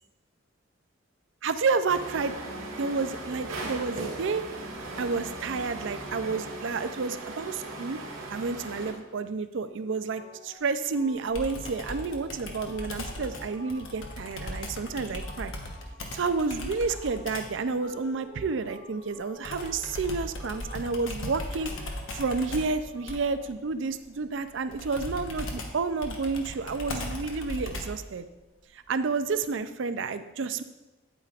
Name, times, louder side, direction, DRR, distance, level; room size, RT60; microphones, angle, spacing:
voice 1, 1.4-2.3 2.8-4.4 5.0-8.0 8.3-15.5 16.1-21.7 22.1-28.3 28.9-30.6, right 4 dB, 60° right, 11 dB, 0.4 m, -30 dB
sound 1, 1.9-8.9, right 2 dB, 85° right, 1.7 m, -38 dB
sound 2, 9.7-23.4, equal, 35° left, 2.6 m, -50 dB
Computer keyboard, 11.3-17.6 19.4-28.1, left 1 dB, 70° left, 1.1 m, -38 dB
9.0 x 8.9 x 2.5 m, 1.1 s
head